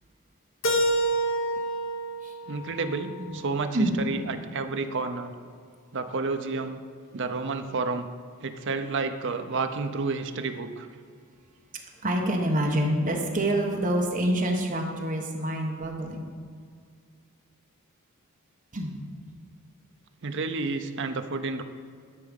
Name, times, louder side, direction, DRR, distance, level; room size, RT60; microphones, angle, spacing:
Keyboard (musical), 0.6-3.5, right 1 dB, 60° left, 1.1 m, -28 dB
voice 1, 2.5-5.3 5.9-6.8 7.1-8.1 8.4-10.9 20.2-21.6, right 3 dB, 55° right, 8 dB, 0.6 m, -30 dB
voice 2, 12.0-16.3 18.7-18.9, right 1 dB, 35° right, 1 dB, 1.2 m, -26 dB
13.0 x 4.8 x 5.3 m, 2.1 s
head